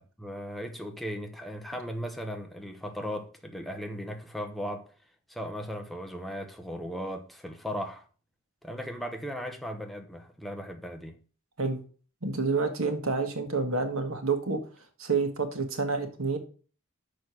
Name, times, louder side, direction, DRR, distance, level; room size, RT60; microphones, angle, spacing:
voice 1, 0.2-4.9 5.3-8.1 8.6-11.2, equal, ahead, 0.9 m, -37 dB
voice 2, 12.2-14.6 15.0-16.4, right 4 dB, 70° right, 1.6 m, -28 dB
6.3 x 5.1 x 6.2 m
head